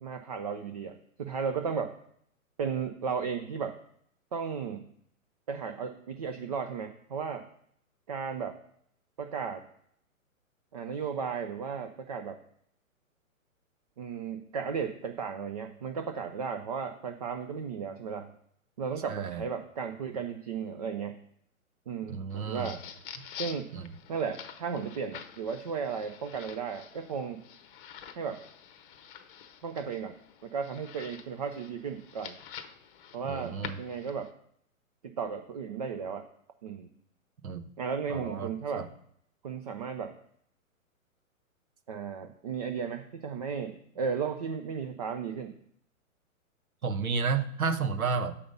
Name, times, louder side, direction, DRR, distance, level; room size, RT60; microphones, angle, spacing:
voice 1, 0.0-1.9 2.6-3.8 4.3-4.9 5.5-7.4 8.1-8.6 9.2-9.6 10.7-12.4 14.0-18.3 18.8-21.2 21.9-22.8 23.4-23.7 24.1-27.4 28.2-28.4 29.6-30.1 30.4-32.4 33.1-34.3 35.0-36.2 36.6-36.9 37.8-38.8 39.4-40.1 41.9-45.6, right 6 dB, 30° right, 6 dB, 0.4 m, -35 dB
voice 2, 19.1-19.4 22.1-22.7 23.7-23.9 33.2-33.8 37.4-37.7 38.1-38.9 46.8-48.3, right 5 dB, 90° right, 10 dB, 1.0 m, -32 dB
sound 1, 22.3-34.3, left 8 dB, 40° left, 0.8 m, -47 dB
7.0 x 5.1 x 5.3 m, 0.70 s
hypercardioid pair, 135°, 42 cm